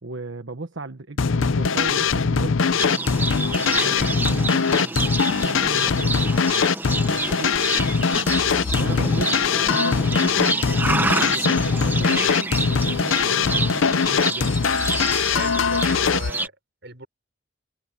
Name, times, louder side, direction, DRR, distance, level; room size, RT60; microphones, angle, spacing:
voice 1, 0.0-6.2 7.1-7.6 8.8-14.7, right 2 dB, 80° right, 1.3 m, -36 dB
sound 1, 1.2-16.3, left 5 dB, 90° left, 0.7 m, -21 dB
Livestock farm animals working animals, 2.8-16.5, right 2 dB, 10° right, 1.1 m, -28 dB
sound 2, 8.1-14.5, left 2 dB, 50° left, 3.8 m, -52 dB
voice 2, 15.3-16.5 16.8-17.1, right 2 dB, 60° right, 6.1 m, -36 dB
head